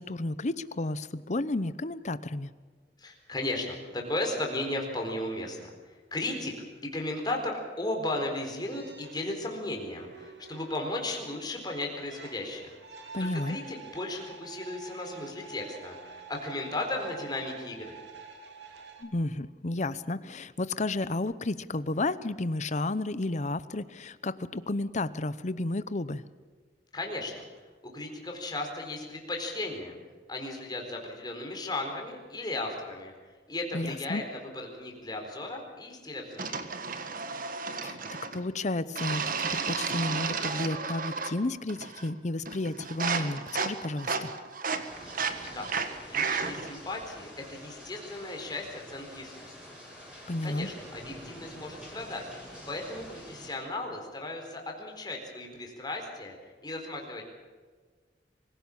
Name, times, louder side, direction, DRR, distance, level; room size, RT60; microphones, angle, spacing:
voice 1, 0.0-2.5 13.1-13.6 19.0-26.2 33.7-34.2 37.8-38.0 38.3-44.3 50.3-50.7, left 2 dB, 40° left, 15 dB, 0.8 m, -32 dB
voice 2, 3.0-6.5 6.8-12.7 13.2-18.0 26.9-27.4 27.9-30.0 30.3-33.1 33.5-36.8 45.5-45.7 46.1-49.7 50.4-52.2 52.7-56.4 56.6-57.3, left 2 dB, 25° left, 1 dB, 4.2 m, -35 dB
sound 1, 8.7-19.0, right 4 dB, 85° right, 3.1 m, -48 dB
sound 2, 36.4-38.4 39.0-41.4 41.7-42.1 42.5-46.7, right 5 dB, 50° right, 1.6 m, -33 dB
sound 3, 44.9-53.5, equal, 5° right, 7.0 m, -47 dB
24.5 x 16.5 x 7.3 m, 1.5 s
head